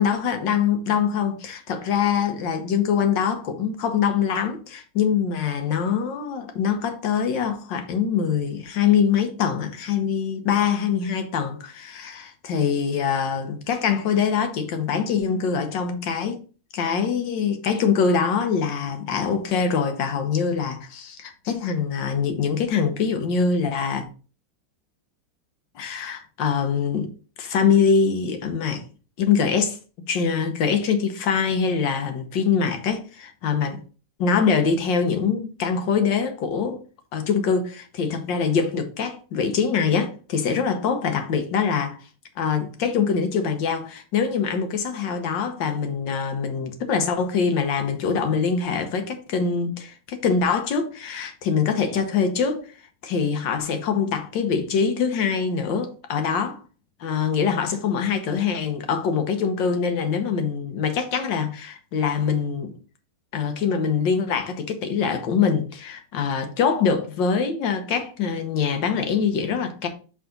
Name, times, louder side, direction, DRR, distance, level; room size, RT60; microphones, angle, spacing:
voice 1, 0.0-16.4 16.7-24.1 25.7-27.1 27.4-28.9 29.2-29.8 30.1-33.8 34.2-36.8 37.1-42.0 42.4-52.7 53.0-56.6 57.0-62.7 63.3-69.9, left 6 dB, 65° left, 1.6 m, -24 dB
7.0 x 4.0 x 3.8 m
omnidirectional pair, 2.3 m